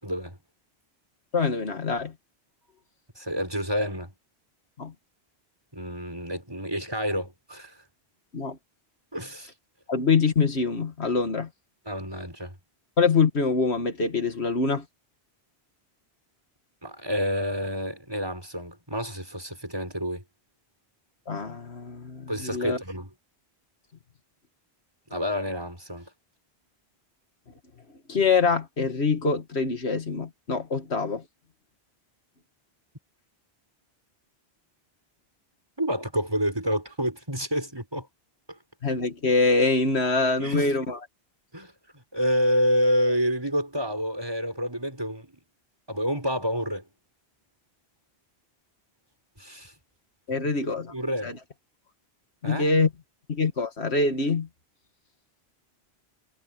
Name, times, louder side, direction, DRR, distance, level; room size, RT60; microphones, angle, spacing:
voice 1, 0.0-0.4 3.2-4.1 5.7-7.8 9.1-9.5 11.9-12.5 16.8-20.2 22.3-23.1 25.1-26.1 35.8-38.1 40.4-40.7 41.5-45.4 45.9-46.8 49.4-49.7 50.3-50.5 50.9-51.3 52.4-52.7, equal, 25° right, 5.9 m, -28 dB
voice 2, 1.3-2.1 4.8-4.9 8.3-8.6 9.9-11.5 13.0-14.8 21.3-22.8 28.1-31.2 38.8-41.1 50.3-50.9 51.2-51.4 52.4-52.9 53.3-54.5, left 4 dB, 85° left, 2.1 m, -24 dB
omnidirectional pair, 1.1 m